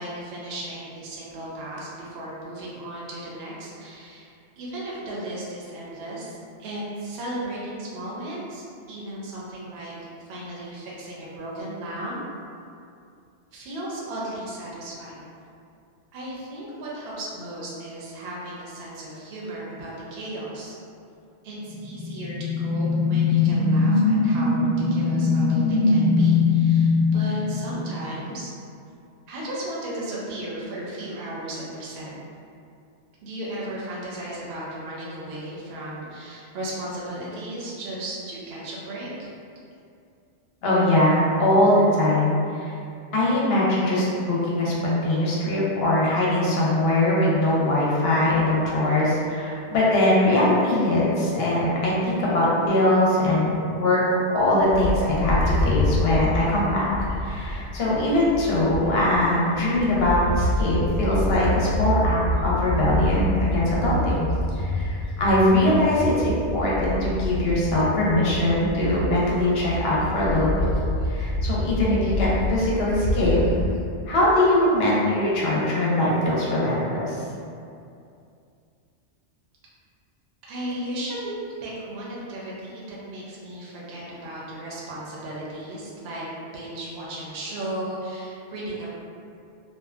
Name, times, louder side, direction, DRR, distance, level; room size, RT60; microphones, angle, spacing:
voice 1, 0.0-9.9 10.3-12.2 13.5-15.4 16.1-20.7 21.4-28.5 29.3-32.1 33.2-39.3 80.5-81.3 81.6-88.9, right 1 dB, 65° right, -6 dB, 0.8 m, -35 dB
sound 1, 21.7-28.3, left 4 dB, 15° left, 0.5 m, -21 dB
voice 2, 40.6-42.7 43.1-54.0 54.3-56.9 57.2-70.7 71.1-73.4 74.1-77.2, left 1 dB, 65° left, -6 dB, 0.8 m, -22 dB
Bird, 54.7-59.2 59.6-73.8, left 1 dB, 85° right, 1.1 m, -27 dB
2.6 x 2.2 x 2.4 m, 2.5 s
omnidirectional pair, 1.2 m